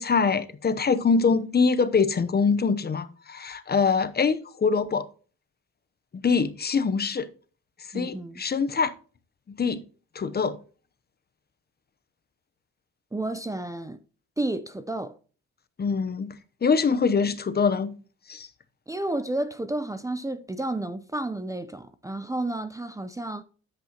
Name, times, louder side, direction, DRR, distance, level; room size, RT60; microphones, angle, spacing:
voice 1, 0.0-5.1 6.1-7.3 7.9-8.9 9.6-9.8 10.1-10.6 15.8-16.3 16.6-17.9 18.3-18.5, left 5 dB, 35° left, 0.8 m, -24 dB
voice 2, 7.9-8.4 13.1-14.0 14.4-15.2 18.9-23.4, right 2 dB, 10° right, 0.6 m, -31 dB
10.0 x 8.0 x 2.9 m
cardioid pair, 90°, 30 cm